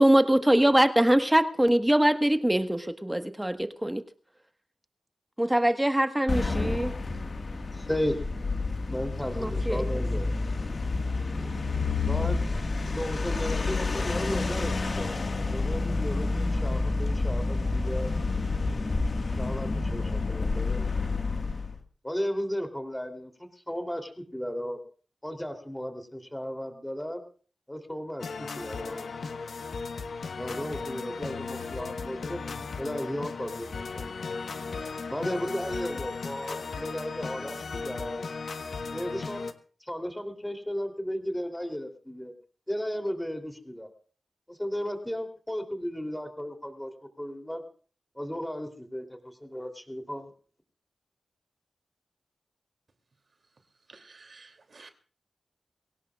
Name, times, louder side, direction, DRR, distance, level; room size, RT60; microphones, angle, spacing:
voice 1, 0.0-4.0 5.4-6.9 9.3-9.8, right 1 dB, 10° right, 8 dB, 1.4 m, -23 dB
sound 1, 6.3-21.8, left 3 dB, 50° left, 1.7 m, -29 dB
voice 2, 7.7-8.1 8.8-10.2 12.0-12.4 12.9-18.1 19.4-20.8 22.0-24.8 25.2-27.2 27.7-28.2 28.5-29.1 30.4-32.4 32.8-34.1 35.1-38.2 38.9-39.5 39.9-42.3 42.7-43.9 44.5-46.9 47.2-47.6 48.1-50.3, equal, 5° left, 5 dB, 3.1 m, -35 dB
sound 2, 28.2-39.5, left 4 dB, 75° left, 1.3 m, -36 dB
voice 3, 53.9-54.9, right 3 dB, 55° right, 6 dB, 2.8 m, -52 dB
24.0 x 17.5 x 2.4 m, 0.40 s
wide cardioid pair, 80°, 0 cm